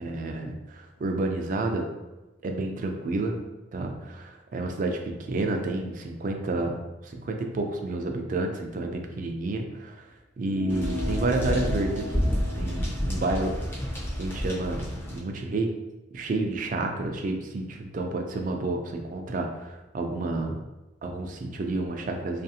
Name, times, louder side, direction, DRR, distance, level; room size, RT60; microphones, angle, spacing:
voice 1, 0.0-1.9 2.4-3.4 3.7-10.1 10.4-12.3 12.6-13.8 14.2-15.7 16.1-20.6 21.0-22.4, right 2 dB, 45° right, 4 dB, 0.3 m, -30 dB
sound 1, 10.4-15.3, left 3 dB, 85° left, 0.8 m, -39 dB
sound 2, 10.7-15.2, equal, 15° left, 0.5 m, -29 dB
2.5 x 2.4 x 2.7 m, 1.1 s
head